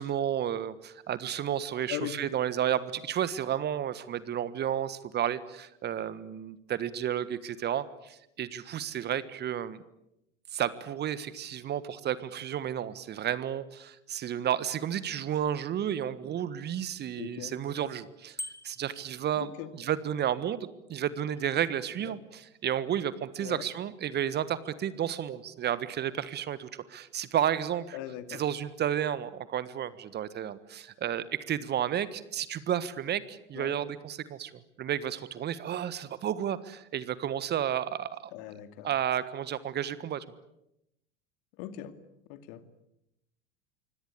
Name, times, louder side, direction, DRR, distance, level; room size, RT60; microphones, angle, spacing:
voice 1, 0.0-9.8 10.5-18.4 18.6-19.5 19.8-28.0 28.3-34.5 34.8-38.1 38.8-40.2, right 10 dB, 30° right, 16 dB, 1.4 m, -32 dB
voice 2, 17.2-17.5 19.3-19.7 22.0-22.2 23.4-23.6 27.9-28.4 33.5-33.8 38.3-38.9 41.6-42.0 42.3-42.6, left 13 dB, 50° left, 10 dB, 2.5 m, -39 dB
Bicycle bell, 18.4-19.0, left 1 dB, 10° left, 2.0 m, -40 dB
26.0 x 25.0 x 8.4 m, 0.84 s
figure-of-eight pair, 80°, 35 cm